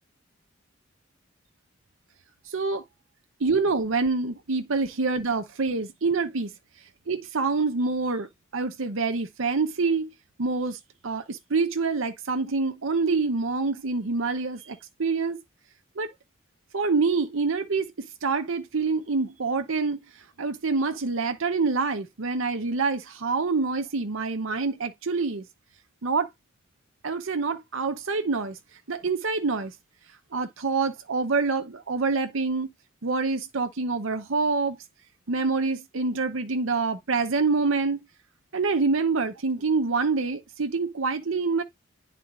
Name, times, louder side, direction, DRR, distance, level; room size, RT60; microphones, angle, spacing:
voice 1, 2.5-2.8 3.4-6.5 7.1-10.1 10.4-10.8 11.0-15.4 16.0-16.1 16.7-17.9 18.2-20.0 20.4-25.4 26.0-26.3 27.0-28.6 28.9-29.7 30.3-32.7 33.0-34.8 35.3-38.0 38.5-41.6, right 4 dB, 75° right, 0.8 m, -26 dB
10.0 x 4.3 x 2.4 m
head